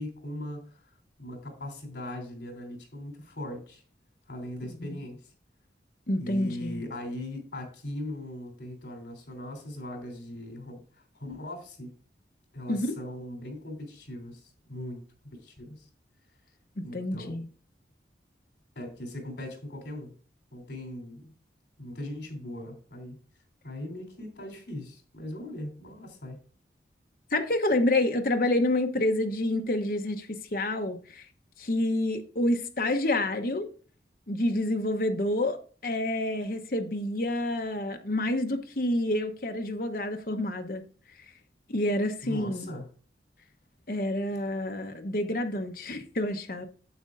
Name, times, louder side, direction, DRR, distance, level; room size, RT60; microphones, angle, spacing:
voice 1, 0.0-3.8 4.3-5.3 6.2-11.9 12.5-15.0 15.4-15.8 16.8-17.3 18.7-20.1 20.5-21.3 21.8-23.2 23.6-26.4 42.2-42.9, left 1 dB, 75° left, 3.2 m, -39 dB
voice 2, 4.7-5.0 6.1-6.8 12.7-12.9 16.8-17.5 27.3-31.2 31.6-33.7 34.3-40.8 41.7-42.7 43.9-46.7, left 1 dB, 50° left, 0.9 m, -28 dB
9.4 x 7.6 x 2.5 m
head